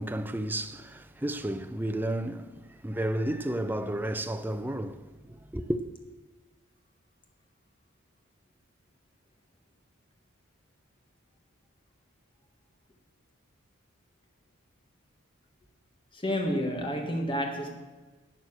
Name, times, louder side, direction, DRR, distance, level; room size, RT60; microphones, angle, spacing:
voice 1, 0.0-5.8, right 1 dB, 10° right, 0.5 m, -32 dB
voice 2, 16.1-17.7, equal, 25° left, 1.6 m, -30 dB
12.0 x 8.1 x 6.5 m
head